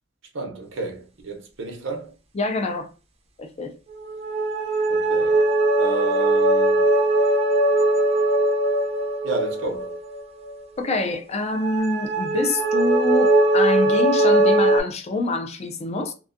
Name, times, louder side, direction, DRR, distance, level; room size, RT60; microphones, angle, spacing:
voice 1, 0.3-2.1 4.9-5.5 5.7-6.8 9.2-9.9, right 3 dB, 80° right, 0.7 m, -31 dB
voice 2, 2.3-2.9 3.4-3.7 10.8-16.1, left 2 dB, 35° left, 0.4 m, -26 dB
sound 1, 4.0-10.6 11.4-14.8, right 2 dB, 35° right, 0.5 m, -20 dB
2.5 x 2.2 x 2.5 m
head